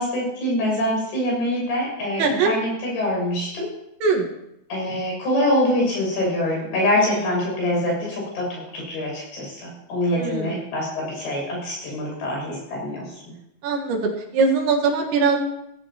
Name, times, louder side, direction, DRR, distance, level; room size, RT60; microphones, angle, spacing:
voice 1, 0.0-3.7 4.7-13.2, left 1 dB, 70° left, -2 dB, 9.2 m, -24 dB
voice 2, 2.2-2.5 4.0-4.3 7.0-7.4 10.2-10.7 13.6-15.4, right 4 dB, 75° right, 0 dB, 3.8 m, -22 dB
20.0 x 15.0 x 2.9 m, 0.83 s
omnidirectional pair, 5.4 m